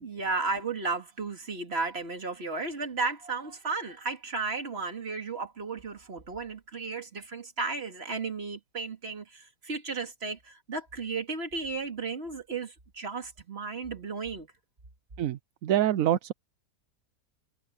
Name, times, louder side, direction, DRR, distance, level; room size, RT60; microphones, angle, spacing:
voice 1, 0.0-14.5, right 4 dB, 35° right, 2.4 m, -34 dB
voice 2, 15.2-16.3, right 12 dB, 65° right, 0.9 m, -26 dB
omnidirectional pair, 1.9 m